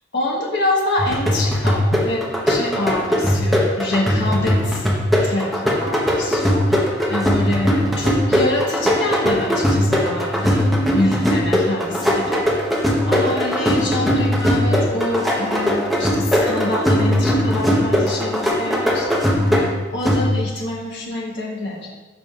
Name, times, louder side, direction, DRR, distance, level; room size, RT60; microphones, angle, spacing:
voice 1, 0.1-4.9 5.2-6.6 7.1-12.4 13.1-19.2 19.9-21.9, left 1 dB, 55° left, -3 dB, 1.4 m, -25 dB
sound 1, 1.0-20.6, equal, ahead, 0.9 m, -19 dB
12.5 x 4.9 x 2.5 m, 1.2 s
head